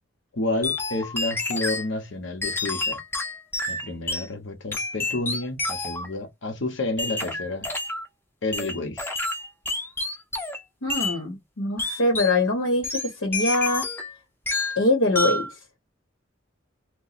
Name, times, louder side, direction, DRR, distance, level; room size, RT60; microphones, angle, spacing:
voice 1, 0.3-3.0 3.7-7.7 8.4-9.1, left 2 dB, 65° left, 0.8 m, -30 dB
sound 1, 0.6-1.9 2.4-4.3 4.7-6.1 7.0-8.1 8.5-10.6 10.9-11.2 11.8-12.4 12.8-14.1 14.5-14.8 15.1-15.5, left 2 dB, 10° left, 0.6 m, -29 dB
voice 2, 10.8-13.9 14.8-15.6, left 2 dB, 90° left, 1.0 m, -23 dB
2.9 x 2.2 x 3.9 m
head